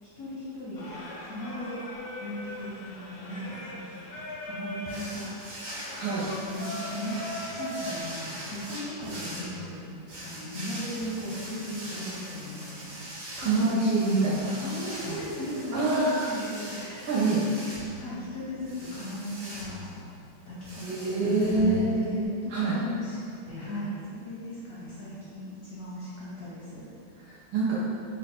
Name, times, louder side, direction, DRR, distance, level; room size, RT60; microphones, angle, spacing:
voice 1, 0.0-0.9 1.2-1.8 2.2-3.8 4.4-5.5 6.2-9.8 10.2-13.8 14.6-20.1 20.5-23.2 23.4-27.2, equal, 70° left, -8 dB, 0.8 m, -37 dB
Singing, 0.8-8.0, left 1 dB, 90° left, 1.6 m, -40 dB
sound 1, 4.9-22.2, equal, 45° right, 0.8 m, -42 dB
voice 2, 13.4-14.6 15.1-15.2 15.7-16.3 17.1-17.4 20.8-21.9 22.5-22.8 27.3-27.7, right 3 dB, 80° right, -9 dB, 1.4 m, -25 dB
3.9 x 2.1 x 4.1 m, 2.4 s
omnidirectional pair, 2.2 m